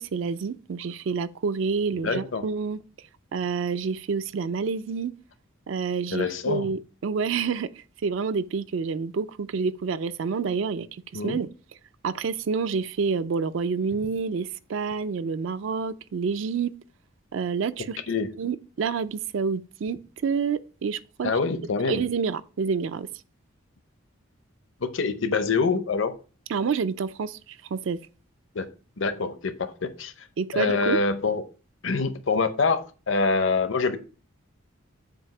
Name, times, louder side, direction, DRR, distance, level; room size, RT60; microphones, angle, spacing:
voice 1, 0.0-2.8 3.3-5.1 5.7-11.5 12.0-16.7 17.3-18.0 18.4-21.4 21.8-23.1 26.5-28.0 30.4-31.0, right 5 dB, 65° right, 0.4 m, -28 dB
voice 2, 2.0-2.4 6.1-6.7 11.1-11.4 18.1-18.3 21.2-22.0 24.8-26.1 28.5-28.7 29.0-30.3 30.5-31.4 31.8-34.0, left 4 dB, 60° left, 0.7 m, -25 dB
7.6 x 2.7 x 5.9 m
head